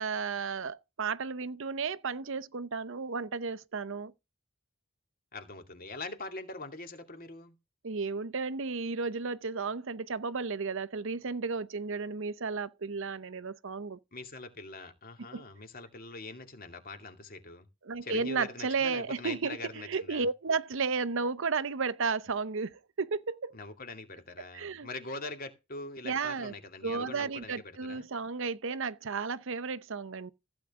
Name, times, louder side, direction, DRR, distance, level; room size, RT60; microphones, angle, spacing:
voice 1, 0.0-4.1 7.8-14.0 15.3-15.4 17.8-23.5 24.5-24.9 26.0-26.5 26.8-30.3, right 4 dB, 60° right, 0.7 m, -33 dB
voice 2, 5.3-7.5 14.1-17.7 18.0-20.3 23.5-28.1, left 3 dB, 45° left, 2.4 m, -43 dB
15.0 x 9.0 x 3.7 m
head